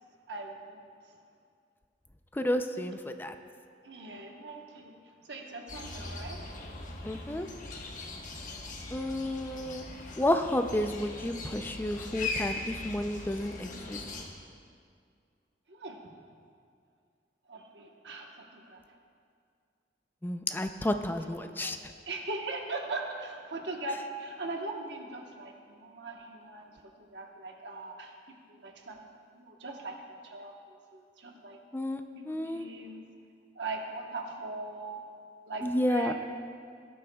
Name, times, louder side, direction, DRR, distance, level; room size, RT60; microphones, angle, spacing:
voice 1, 0.3-0.9 3.8-6.4 15.7-16.0 17.5-18.8 21.4-21.7 22.1-28.1 28.5-30.5 30.9-31.6 32.2-33.0 33.5-35.0 35.5-36.1, right 2 dB, 70° right, 2 dB, 1.2 m, -40 dB
voice 2, 2.3-3.3 7.0-7.5 8.9-9.9 10.2-14.0 20.2-21.8 31.7-32.7 35.6-36.1, left 1 dB, 10° left, 7 dB, 0.5 m, -31 dB
sound 1, 5.7-14.2, left 3 dB, 45° left, 1.2 m, -40 dB
18.5 x 10.5 x 2.3 m, 2.2 s
head